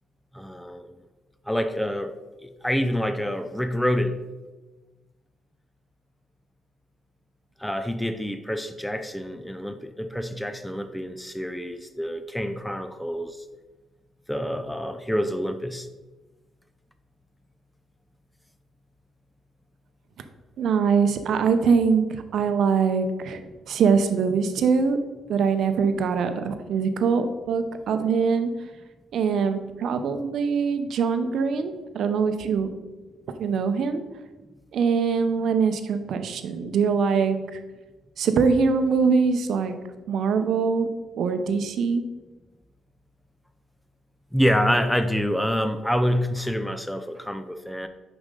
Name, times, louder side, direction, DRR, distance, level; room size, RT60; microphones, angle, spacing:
voice 1, 0.3-0.9 1.5-4.2 7.6-13.4 14.3-15.9 44.3-47.9, equal, 5° left, 9 dB, 0.4 m, -27 dB
voice 2, 20.6-23.4 23.7-25.0 25.3-28.5 29.1-32.7 33.4-34.0 34.7-37.6 38.2-39.7 40.1-40.9 41.2-42.0, right 5 dB, 70° right, 8 dB, 0.6 m, -23 dB
6.3 x 5.1 x 3.8 m, 1.2 s
cardioid pair, 90°, 0 cm